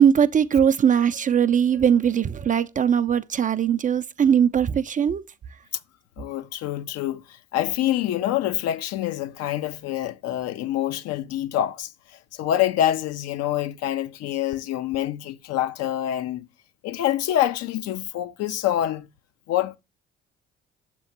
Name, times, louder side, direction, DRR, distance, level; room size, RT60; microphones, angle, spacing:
voice 1, 0.0-5.2, right 8 dB, 30° right, 0.4 m, -20 dB
voice 2, 6.2-16.5 16.8-19.1 19.5-19.8, left 12 dB, 60° left, 0.5 m, -26 dB
7.0 x 3.0 x 5.5 m
hypercardioid pair, 50°, 29 cm